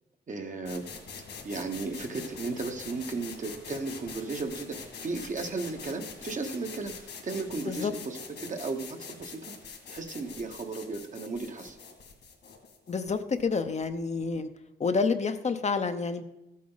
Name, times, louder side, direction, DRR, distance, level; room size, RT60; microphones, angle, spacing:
voice 1, 0.3-0.9 1.4-9.5 9.9-11.8, right 3 dB, 45° right, 5 dB, 1.2 m, -35 dB
sound 1, 0.6-14.4, left 5 dB, 75° left, 2.2 m, -44 dB
voice 2, 12.9-14.5 14.8-16.2, left 4 dB, 40° left, 8 dB, 0.7 m, -28 dB
14.0 x 8.4 x 3.9 m, 0.93 s
wide cardioid pair, 125°, 18 cm